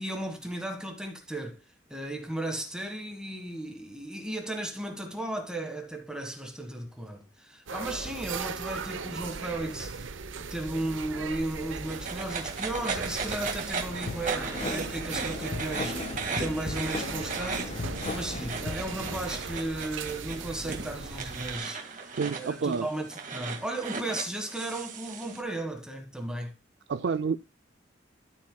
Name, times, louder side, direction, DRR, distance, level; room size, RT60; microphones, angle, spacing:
voice 1, 0.0-1.6 1.9-10.1 10.5-26.5, right 1 dB, 5° right, 1.6 m, -35 dB
sound 1, 7.7-21.6, right 5 dB, 80° right, 0.8 m, -38 dB
sound 2, 11.8-25.4, right 5 dB, 40° right, 2.0 m, -37 dB
sound 3, 14.1-19.1, left 3 dB, 30° left, 0.4 m, -37 dB
voice 2, 22.2-22.9 26.9-27.4, right 5 dB, 60° right, 0.4 m, -28 dB
12.5 x 8.4 x 2.3 m
head